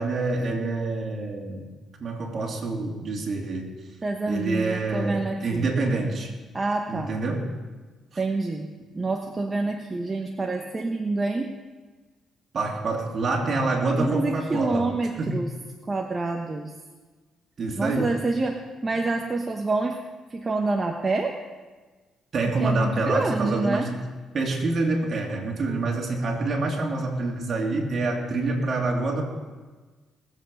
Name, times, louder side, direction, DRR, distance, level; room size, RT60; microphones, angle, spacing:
voice 1, 0.0-1.7 2.0-3.7 4.3-6.3 6.9-7.5 12.5-14.9 15.2-15.4 17.6-18.1 22.3-24.0 24.3-29.2, right 3 dB, 50° right, 0 dB, 2.9 m, -26 dB
voice 2, 4.0-5.7 6.5-7.1 8.2-8.7 8.9-11.5 13.9-15.5 15.9-16.7 17.8-20.0 20.3-21.4 22.6-23.9, right 3 dB, 25° right, 2 dB, 1.1 m, -27 dB
19.5 x 8.1 x 5.4 m, 1.3 s
cardioid pair, 90°, 0 cm